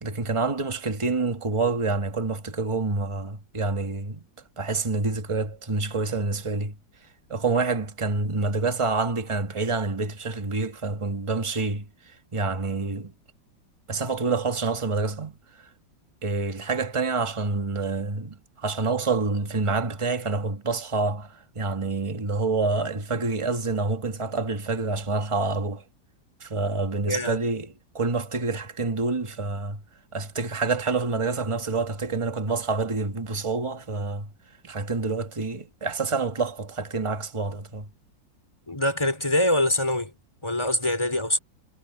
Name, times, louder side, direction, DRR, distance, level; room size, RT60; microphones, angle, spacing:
voice 1, 0.0-4.2 4.6-6.8 7.3-13.1 13.9-15.7 16.2-25.8 26.4-29.8 30.1-34.3 34.6-37.9, right 3 dB, 20° right, 1.4 m, -27 dB
voice 2, 27.0-27.4 38.7-40.1 40.4-41.4, left 1 dB, 15° left, 4.0 m, -24 dB
omnidirectional pair, 2.0 m